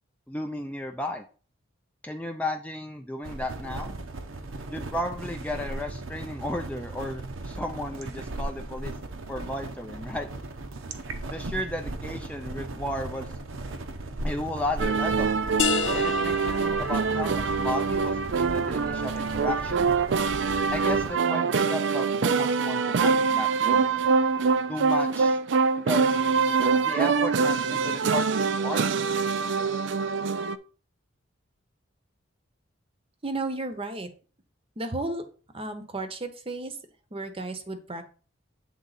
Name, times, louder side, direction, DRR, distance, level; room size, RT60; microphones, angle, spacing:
voice 1, 0.3-1.2 2.0-3.9 4.7-8.9 9.3-10.3 11.3-13.3 14.2-15.3 15.9-19.9 20.7-23.9 24.7-25.4 25.8-26.2 26.8-28.8, left 1 dB, 5° left, 3 dB, 0.4 m, -34 dB
sound 1, 3.2-21.2, right 2 dB, 85° right, 0.8 m, -37 dB
sound 2, 14.8-30.6, right 5 dB, 65° right, 0.4 m, -24 dB
sound 3, 15.6-20.9, left 6 dB, 70° left, 0.7 m, -34 dB
voice 2, 33.2-34.1 34.8-35.2 35.5-36.8 37.1-38.0, right 2 dB, 30° right, 8 dB, 0.8 m, -33 dB
8.1 x 3.7 x 4.0 m, 0.39 s
head